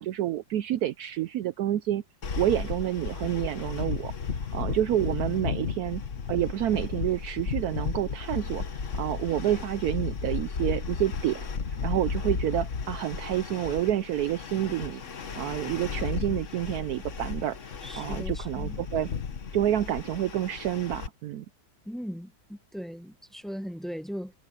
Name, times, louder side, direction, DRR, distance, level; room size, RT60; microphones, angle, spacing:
voice 1, 0.0-2.0 2.4-4.1 4.5-6.0 6.3-8.6 8.9-11.4 11.8-15.0 15.4-19.1 19.5-21.4, right 12 dB, 70° right, 1.0 m, -28 dB
sound 1, 2.2-21.1, left 5 dB, 50° left, 1.5 m, -34 dB
voice 2, 17.8-18.8 21.8-24.3, equal, ahead, 0.6 m, -38 dB
omnidirectional pair, 1.8 m